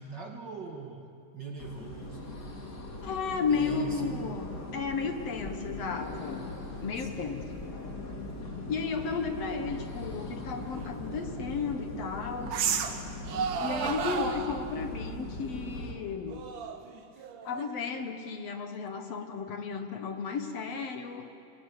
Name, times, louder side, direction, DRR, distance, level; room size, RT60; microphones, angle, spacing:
voice 1, 0.0-2.4 3.5-4.3 7.0-7.4, right 4 dB, 40° right, 2 dB, 2.0 m, -42 dB
sound 1, 1.6-15.9, left 2 dB, 35° left, 3.2 m, -40 dB
voice 2, 3.0-4.5 4.7-6.5 6.8-7.6 8.7-12.6 13.6-16.4 17.4-21.3, left 5 dB, 60° left, 6 dB, 2.3 m, -33 dB
sound 2, 10.8-10.9 12.5-13.0 13.3-14.6 16.3-17.9, right 7 dB, 90° right, 3.0 m, -32 dB
29.0 x 19.5 x 9.7 m, 2.6 s
omnidirectional pair, 3.5 m